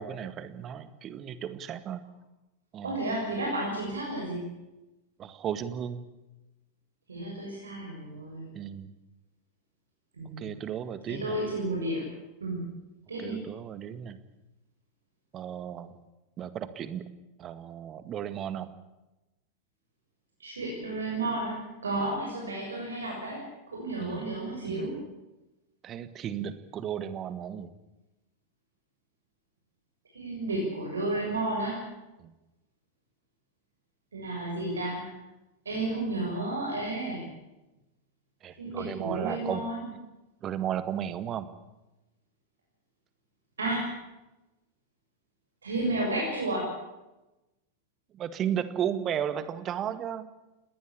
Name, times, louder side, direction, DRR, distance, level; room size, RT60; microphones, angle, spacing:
voice 1, 0.0-2.0 2.7-3.0 5.2-6.0 8.5-8.9 10.4-11.4 13.2-14.2 15.3-16.0 16.4-17.0 17.4-18.7 24.0-24.3 24.7-24.9 25.8-27.7 32.2-32.3 38.4-39.6 40.4-41.5 48.1-50.3, right 9 dB, 30° right, 12 dB, 1.9 m, -34 dB
voice 2, 2.8-4.4 7.1-8.5 10.2-10.5 11.1-12.1 12.4-12.8 13.1-13.4 20.4-21.6 21.8-23.4 23.7-25.0 30.1-31.8 34.1-35.1 35.7-37.3 38.6-39.9 43.6-43.9 45.6-46.7, right 2 dB, 70° right, -2 dB, 6.9 m, -32 dB
20.0 x 19.0 x 8.7 m, 0.98 s
figure-of-eight pair, 90°, 0 cm